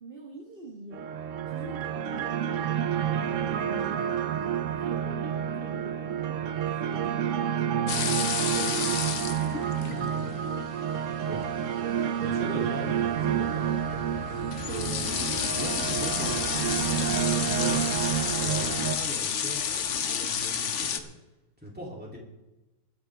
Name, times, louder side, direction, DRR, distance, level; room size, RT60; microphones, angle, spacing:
voice 1, 0.0-2.9 3.4-4.0 4.8-7.4 8.4-9.5, right 1 dB, 35° right, 0 dB, 1.5 m, -44 dB
sound 1, 0.9-19.0, right 9 dB, 60° right, 0.8 m, -29 dB
sound 2, 7.9-21.0, left 7 dB, 55° left, 1.0 m, -31 dB
voice 2, 9.9-10.4 11.3-11.4 12.2-13.8 14.6-17.0 17.3-17.8 18.4-21.1 21.6-22.2, equal, 5° right, -3 dB, 2.9 m, -40 dB
sound 3, 13.8-19.1, left 11 dB, 75° left, 0.7 m, -42 dB
22.5 x 9.0 x 3.5 m, 1.1 s
omnidirectional pair, 1.8 m